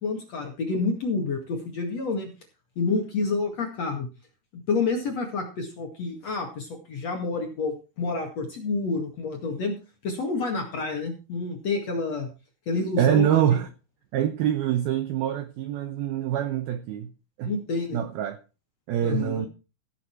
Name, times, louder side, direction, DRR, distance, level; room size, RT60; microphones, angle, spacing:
voice 1, 0.0-2.3 2.8-4.1 4.7-9.8 10.0-12.3 12.7-13.2 17.4-18.0 19.0-19.5, left 3 dB, 50° left, 2.3 m, -28 dB
voice 2, 13.0-13.7 14.1-17.1 17.4-17.5 17.9-18.4 18.9-19.5, right 10 dB, 80° right, 2.2 m, -25 dB
16.5 x 8.1 x 4.5 m
omnidirectional pair, 5.4 m